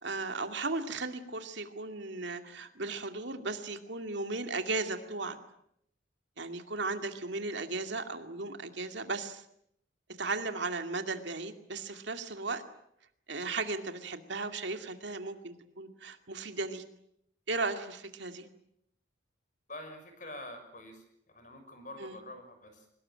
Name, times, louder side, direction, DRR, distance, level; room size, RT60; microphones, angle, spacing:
voice 1, 0.0-5.4 6.4-9.4 10.2-12.6 13.3-16.8 17.5-18.5 22.0-22.2, right 3 dB, 70° right, 7 dB, 2.4 m, -36 dB
voice 2, 19.7-22.9, left 1 dB, 40° left, 7 dB, 6.4 m, -46 dB
24.0 x 21.0 x 9.0 m, 0.73 s
head